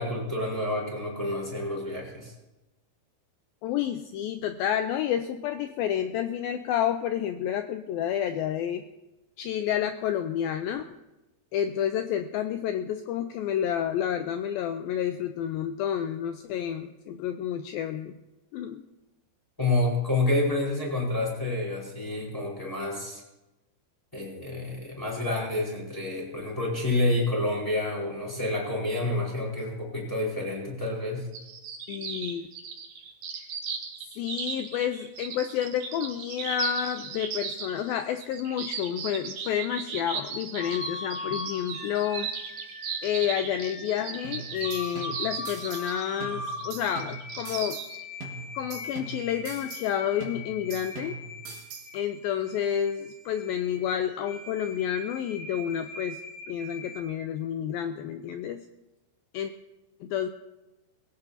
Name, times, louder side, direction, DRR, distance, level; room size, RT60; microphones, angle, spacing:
voice 1, 0.0-2.3 19.6-23.2 24.1-31.3, left 2 dB, 5° left, -4 dB, 4.1 m, -28 dB
voice 2, 3.6-8.8 9.4-10.9 11.5-18.2 18.5-18.8 31.9-32.4 33.4-33.5 34.2-42.3 43.0-47.8 48.6-51.2 51.9-56.2 56.5-58.6 59.3-59.5 60.0-60.3, left 9 dB, 90° left, 8 dB, 2.1 m, -30 dB
sound 1, 31.3-48.0, right 6 dB, 60° right, 2.9 m, -36 dB
sound 2, 40.6-57.0, left 3 dB, 70° left, 0.8 m, -41 dB
sound 3, 44.2-45.9 46.2-47.9 48.2-49.9 50.2-51.9, right 5 dB, 80° right, 3.9 m, -42 dB
20.0 x 17.0 x 2.8 m, 0.99 s
omnidirectional pair, 4.9 m